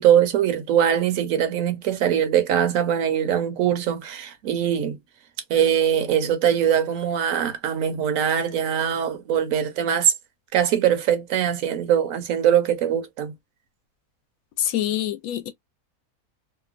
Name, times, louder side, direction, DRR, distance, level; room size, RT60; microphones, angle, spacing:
voice 1, 0.0-5.0 5.5-10.1 10.5-13.3, right 9 dB, 70° right, 0.9 m, -22 dB
voice 2, 14.6-15.5, left 11 dB, 75° left, 1.0 m, -25 dB
2.9 x 2.1 x 2.4 m
omnidirectional pair, 1.6 m